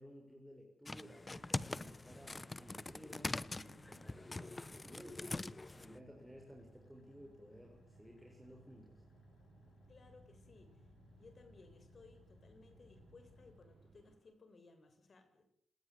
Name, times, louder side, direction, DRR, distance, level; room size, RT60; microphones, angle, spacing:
voice 1, 0.0-9.0, equal, ahead, 0 dB, 7.2 m, -57 dB
sound 1, 0.9-6.0, left 2 dB, 25° left, 1.1 m, -43 dB
sound 2, 1.7-14.2, right 5 dB, 75° right, 4.1 m, -65 dB
Car / Idling, 1.9-14.3, left 7 dB, 70° left, 2.7 m, -67 dB
voice 2, 9.9-10.8 11.2-15.4, left 3 dB, 50° left, 8 dB, 7.4 m, -61 dB
28.5 x 19.0 x 10.0 m, 0.70 s
cardioid pair, 75°, 0 cm